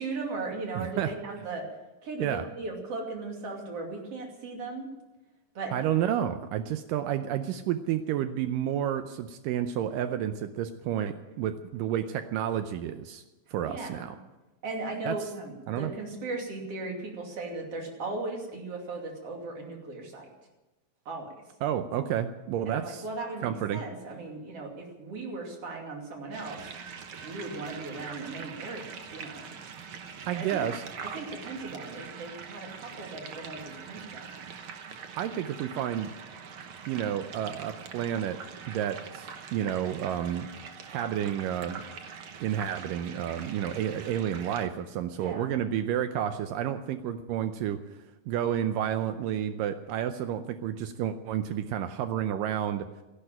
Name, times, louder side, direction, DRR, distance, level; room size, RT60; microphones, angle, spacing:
voice 1, 0.0-1.6 2.0-4.9 5.5-5.7 13.6-14.1 14.6-20.3 21.0-21.4 22.7-26.7 27.2-29.5 30.3-30.6 31.0-34.5 45.2-45.5, right 3 dB, 45° right, 1 dB, 3.5 m, -37 dB
voice 2, 0.8-1.1 2.2-2.4 5.7-13.2 13.5-14.2 15.1-15.2 15.7-15.9 21.6-23.0 23.4-23.8 30.3-30.8 35.2-36.1 36.9-38.4 38.7-40.5 40.9-41.8 42.4-47.8 48.3-52.9, right 10 dB, 80° right, 9 dB, 2.3 m, -30 dB
sound 1, 26.3-44.7, right 6 dB, 65° right, 1.4 m, -43 dB
14.0 x 11.5 x 8.8 m, 1.1 s
omnidirectional pair, 3.9 m